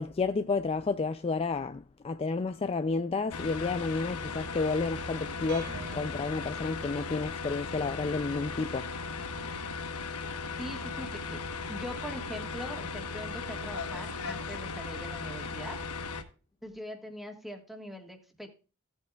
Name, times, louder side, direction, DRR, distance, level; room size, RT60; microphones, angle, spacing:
voice 1, 0.0-8.9, left 4 dB, 25° left, 0.4 m, -31 dB
sound 1, 3.3-16.2, left 4 dB, 80° left, 1.2 m, -37 dB
sound 2, 5.5-7.5, right 4 dB, 50° right, 0.8 m, -46 dB
voice 2, 10.6-11.4 11.7-15.8 16.6-18.5, equal, ahead, 1.7 m, -42 dB
16.5 x 8.1 x 2.4 m
head